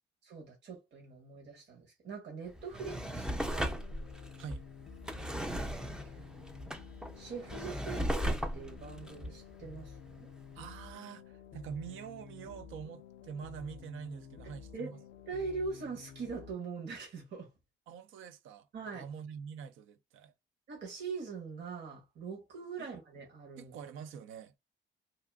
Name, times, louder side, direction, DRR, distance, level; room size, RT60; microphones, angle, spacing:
voice 1, 0.2-3.8 5.4-6.2 7.2-10.3 14.7-14.9 15.3-17.5 18.7-19.0 20.7-23.7, right 4 dB, 60° right, 1.3 m, -42 dB
Drawer open or close, 2.5-10.2 10.7-10.8, equal, 5° right, 0.4 m, -37 dB
sound 1, 3.0-16.5, left 7 dB, 70° left, 0.4 m, -51 dB
voice 2, 10.6-15.0 17.9-20.3 22.8-22.9 23.6-24.6, right 7 dB, 85° right, 0.5 m, -45 dB
2.8 x 2.5 x 2.3 m
cardioid pair, 90°, 20 cm